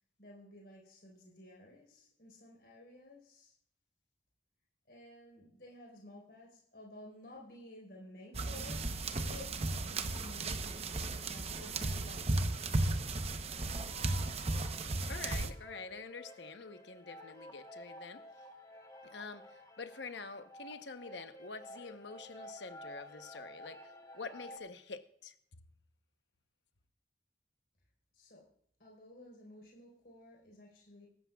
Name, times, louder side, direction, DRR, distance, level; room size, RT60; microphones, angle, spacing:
voice 1, 0.2-3.5 4.9-10.6 11.2-12.6 28.1-28.4 28.8-31.1, left 1 dB, 60° left, 4.2 m, -54 dB
sound 1, 8.3-15.5, right 2 dB, 35° right, 0.8 m, -35 dB
sound 2, 11.5-13.1 13.4-24.6, equal, 20° left, 1.4 m, -53 dB
voice 2, 15.1-18.2 19.0-25.3, left 4 dB, 80° left, 1.0 m, -47 dB
23.5 x 13.5 x 2.4 m
head